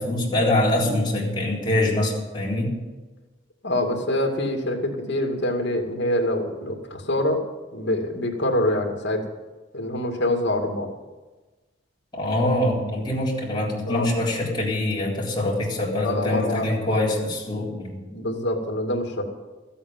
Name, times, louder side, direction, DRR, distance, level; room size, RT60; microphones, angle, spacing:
voice 1, 0.0-2.7 12.1-18.0, left 1 dB, 25° left, -4 dB, 3.9 m, -24 dB
voice 2, 3.6-7.4 7.7-9.3 9.7-10.9 13.9-14.1 16.0-17.0 18.1-19.2, left 1 dB, 65° left, 3 dB, 2.5 m, -25 dB
13.5 x 8.5 x 9.2 m, 1.2 s
head